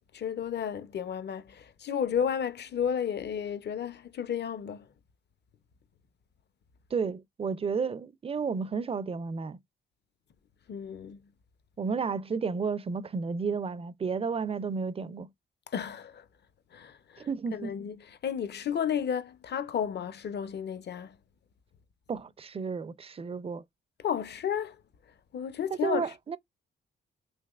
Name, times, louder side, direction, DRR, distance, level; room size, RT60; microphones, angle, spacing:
voice 1, 0.1-4.9 10.7-11.2 15.7-16.2 16.7-21.2 24.0-24.8 25.3-26.1, left 8 dB, 55° left, 0.6 m, -32 dB
voice 2, 6.9-9.6 11.8-15.3 17.2-17.7 22.1-23.6 25.8-26.4, right 5 dB, 30° right, 0.4 m, -32 dB
3.2 x 3.0 x 2.4 m
cardioid pair, 75°, 21 cm